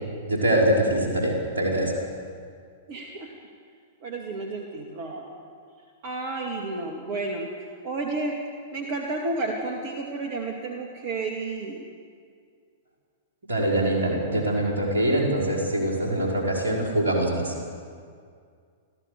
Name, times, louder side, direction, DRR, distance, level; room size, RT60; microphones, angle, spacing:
voice 1, 0.3-1.9 13.5-17.5, right 1 dB, 70° right, -1 dB, 5.6 m, -23 dB
voice 2, 2.9-3.3 4.0-5.2 6.0-7.5 7.8-8.4 8.7-11.8, right 3 dB, 45° right, 1 dB, 2.4 m, -31 dB
28.5 x 15.0 x 7.0 m, 2.2 s
figure-of-eight pair, 100°, 0 cm